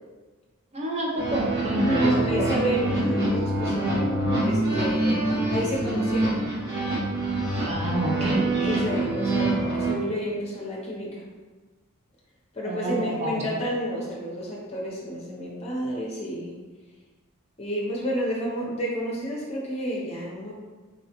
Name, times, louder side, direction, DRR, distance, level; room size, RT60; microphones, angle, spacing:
voice 1, 0.7-2.5 2.9-3.1 7.6-8.8 12.6-13.6, right 1 dB, 30° right, -2 dB, 0.5 m, -29 dB
sound 1, 1.2-9.9, right 2 dB, 50° right, 1.1 m, -25 dB
voice 2, 1.7-6.4 8.7-11.2 12.5-16.5 17.6-20.5, equal, 30° left, -3 dB, 0.7 m, -30 dB
3.5 x 2.3 x 2.9 m, 1.3 s
head